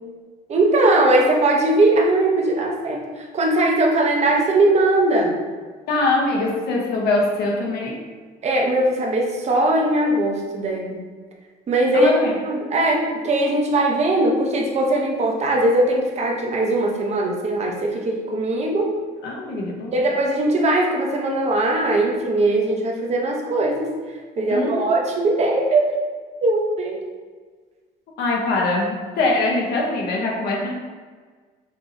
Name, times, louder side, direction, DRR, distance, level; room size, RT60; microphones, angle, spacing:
voice 1, 0.5-5.4 8.4-11.0 11.7-12.1 12.4-18.9 19.9-23.9 24.4-26.0 26.4-27.1, right 2 dB, 40° right, 0 dB, 0.8 m, -20 dB
voice 2, 5.9-8.0 11.9-12.4 19.2-20.1 24.5-24.9 28.2-30.7, left 2 dB, 70° left, -1 dB, 0.9 m, -22 dB
5.3 x 3.0 x 2.6 m, 1.5 s
cardioid pair, 110°, 17 cm